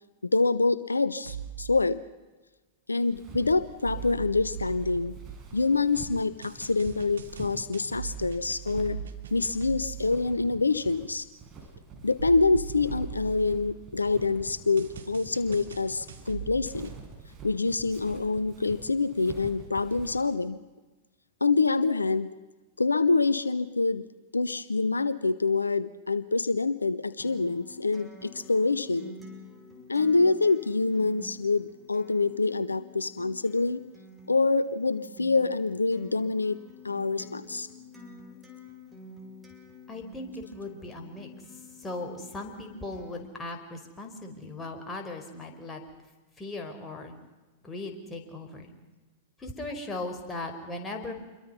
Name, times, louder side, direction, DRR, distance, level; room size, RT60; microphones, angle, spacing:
voice 1, 0.2-2.0 2.9-5.2 5.5-9.0 9.3-11.3 12.0-16.9 17.4-20.6 21.4-22.3 22.8-24.1 24.3-29.1 29.9-33.8 34.3-36.6 36.8-37.7, left 3 dB, 85° left, 16 dB, 0.8 m, -26 dB
sound 1, 1.2-1.8 3.8-5.7 6.4-10.1 12.2-14.0 14.8-17.0, right 9 dB, 70° right, 2.4 m, -40 dB
Walk footsteps, 3.0-20.3, right 4 dB, 30° right, 5.8 m, -47 dB
Acoustic guitar, 27.2-43.2, left 2 dB, 10° right, 5.6 m, -49 dB
voice 2, 39.9-45.8 46.4-47.1 47.6-48.7 49.4-51.1, left 2 dB, 15° left, 3 dB, 4.8 m, -38 dB
27.5 x 22.5 x 5.6 m, 1.2 s
figure-of-eight pair, 95°, 0 cm